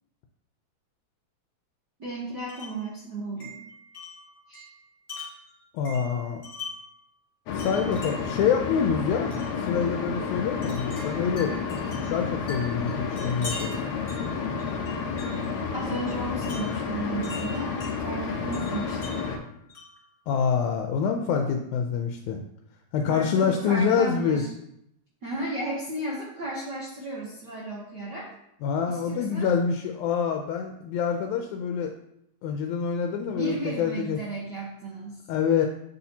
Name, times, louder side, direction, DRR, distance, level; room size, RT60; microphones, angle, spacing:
voice 1, 2.0-3.6 4.5-4.7 15.7-19.2 23.1-24.5 25.2-28.3 28.9-29.5 33.3-35.2, right 2 dB, 90° right, -4 dB, 0.9 m, -34 dB
Wind chime, 2.5-2.9 3.4-7.0 7.6-8.4 9.3-9.6 10.6-15.5 16.4-18.0 18.5-20.0, left 2 dB, 25° left, 1.6 m, -43 dB
voice 2, 5.7-6.4 7.5-9.3 9.6-11.5 12.1-13.7 20.3-22.4 22.9-24.4 28.6-31.9 32.4-34.2 35.3-35.7, left 7 dB, 90° left, 4 dB, 2.0 m, -26 dB
sound 1, 7.5-19.4, left 5 dB, 75° left, 1.4 m, -31 dB
8.0 x 4.1 x 2.8 m, 0.77 s
omnidirectional pair, 3.3 m